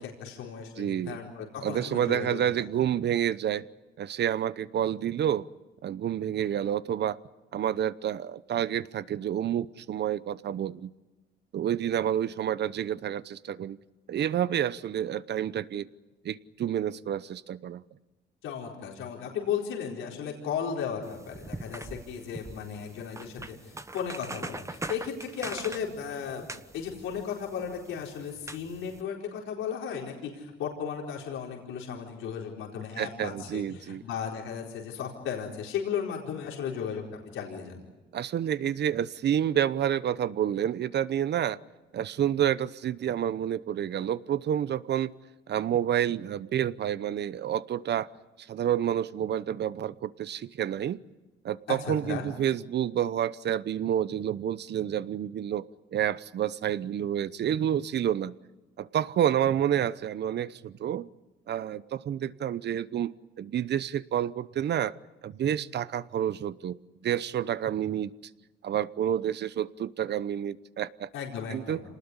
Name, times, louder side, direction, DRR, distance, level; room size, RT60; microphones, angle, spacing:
voice 1, 0.0-2.6 18.4-26.5 26.7-37.0 37.3-37.8 51.7-52.3 71.1-71.8, left 7 dB, 90° left, -1 dB, 4.5 m, -35 dB
voice 2, 0.8-1.2 1.6-3.7 4.0-5.5 5.8-7.2 7.5-10.9 11.5-13.8 14.1-15.9 16.2-17.8 33.0-34.0 38.1-41.6 41.9-45.1 45.5-48.1 48.4-51.0 51.4-58.3 58.8-61.1 61.5-65.0 65.2-66.8 67.0-68.1 68.6-71.1 71.5-71.8, right 10 dB, 60° right, 17 dB, 0.9 m, -29 dB
sound 1, 21.0-29.0, right 2 dB, 15° right, 1.2 m, -42 dB
27.0 x 19.5 x 9.8 m, 1.1 s
cardioid pair, 90°, 20 cm